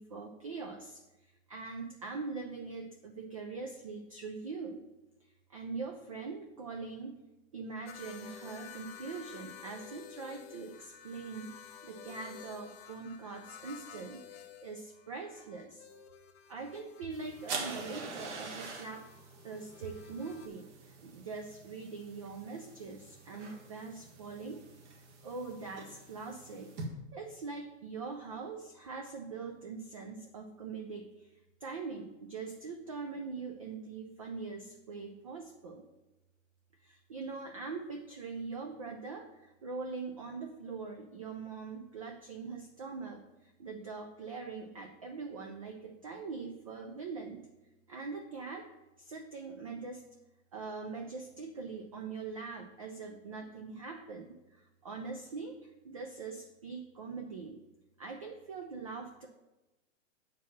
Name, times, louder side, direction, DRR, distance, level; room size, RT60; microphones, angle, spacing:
voice 1, 0.0-4.8 5.2-7.2 7.5-15.9 16.5-19.1 19.4-24.6 25.2-26.8 27.1-35.8 36.8-47.5 47.9-48.7 49.0-50.0 50.5-57.6 58.0-59.3, right 4 dB, 30° right, 4 dB, 0.4 m, -42 dB
sound 1, 7.9-20.5, left 9 dB, 50° left, 0.9 m, -52 dB
sound 2, 17.1-26.8, right 4 dB, 65° right, 1.9 m, -46 dB
7.2 x 4.7 x 7.0 m, 1.0 s
hypercardioid pair, 165°, 39 cm